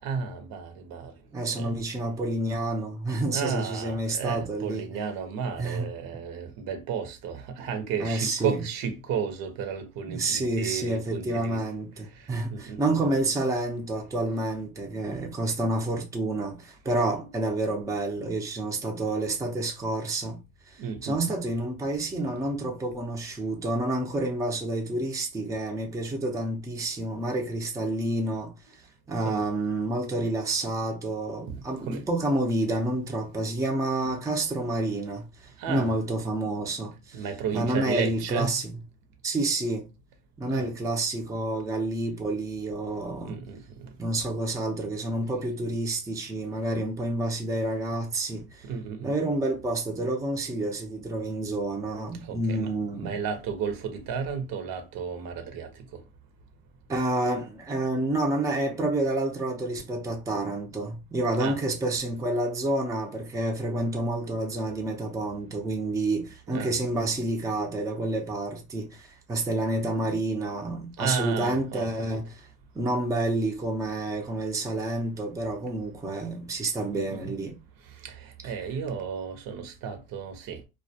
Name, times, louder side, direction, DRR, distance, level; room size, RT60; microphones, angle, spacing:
voice 1, 0.0-1.1 1.5-1.7 3.3-11.7 12.1-13.0 20.8-21.2 29.2-29.5 31.8-32.0 35.6-35.9 37.1-38.6 40.5-40.7 43.2-43.9 48.6-49.1 52.2-52.7 53.0-55.7 61.4-61.6 66.5-66.7 70.5-70.6 71.0-72.2 76.9-77.3 78.0-80.6, right 6 dB, 60° right, 0.7 m, -33 dB
voice 2, 1.3-4.9 5.6-5.9 8.0-8.5 10.1-20.4 20.7-28.5 29.1-37.2 37.5-38.6 39.2-39.9 40.4-43.4 44.0-48.6 49.0-53.1 56.9-72.5 72.7-77.6 78.4-78.5, right 2 dB, 10° right, 0.5 m, -29 dB
2.2 x 2.2 x 2.6 m
supercardioid pair, 100°, 38 cm